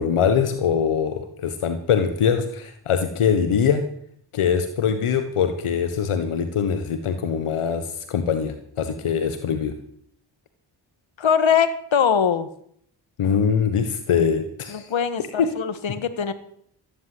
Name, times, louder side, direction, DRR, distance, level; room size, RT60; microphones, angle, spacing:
voice 1, 0.0-3.8 4.3-9.7 13.2-14.9 15.4-15.5, left 7 dB, 80° left, 9 dB, 1.6 m, -23 dB
voice 2, 11.2-12.5 14.7-16.3, left 7 dB, 65° left, 11 dB, 1.8 m, -22 dB
14.5 x 10.5 x 8.0 m, 0.65 s
supercardioid pair, 40°, 50 cm